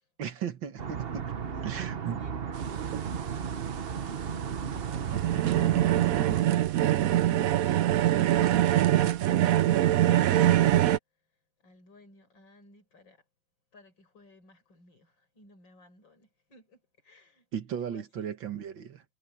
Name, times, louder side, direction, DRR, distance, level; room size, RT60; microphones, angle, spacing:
voice 1, 0.2-1.3 1.6-2.2 17.5-19.0, right 8 dB, 80° right, 2.3 m, -36 dB
sound 1, 0.8-6.4, right 7 dB, 40° right, 1.0 m, -35 dB
voice 2, 1.3-5.8 6.1-10.8 11.6-13.2 13.7-17.5 17.7-18.3, left 2 dB, 80° left, 6.4 m, -58 dB
sound 2, 2.6-11.0, right 13 dB, 65° right, 0.9 m, -24 dB
omnidirectional pair, 2.0 m